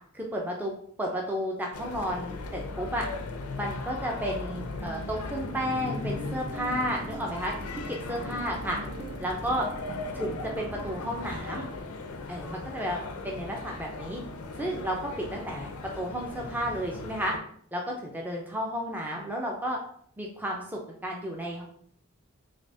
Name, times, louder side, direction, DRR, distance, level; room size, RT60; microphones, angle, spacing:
voice 1, 0.1-3.1 3.6-7.5 7.9-8.8 9.2-9.7 10.1-11.7 12.3-14.2 14.5-15.7 16.0-17.3 17.7-19.8 20.2-21.6, equal, 10° right, -1 dB, 0.4 m, -32 dB
sound 1, 1.7-17.4, left 3 dB, 75° left, 0.4 m, -38 dB
sound 2, 4.5-11.5, right 6 dB, 80° right, 0.5 m, -48 dB
sound 3, 5.4-13.9, equal, 35° right, 1.3 m, -45 dB
3.3 x 3.2 x 2.6 m, 0.62 s
head